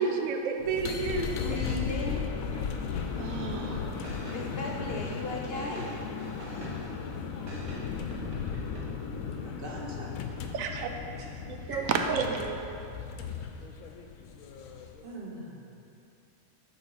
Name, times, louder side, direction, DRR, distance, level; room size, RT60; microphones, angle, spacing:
voice 1, 0.0-1.4 3.1-4.0 10.5-10.9 11.5-12.8, right 5 dB, 85° right, 4 dB, 1.0 m, -31 dB
sound 1, 0.6-15.0, left 6 dB, 85° left, 1.0 m, -36 dB
voice 2, 1.3-2.3 4.3-5.9, left 3 dB, 60° left, -1 dB, 0.6 m, -36 dB
sound 2, 4.0-7.1 7.5-8.8, right 1 dB, 65° right, 1.5 m, -43 dB
voice 3, 9.4-10.1 11.2-11.3 11.7-11.8 15.0-15.8, right 1 dB, 45° right, -2 dB, 1.1 m, -42 dB
6.8 x 4.1 x 5.5 m, 2.7 s
omnidirectional pair, 1.4 m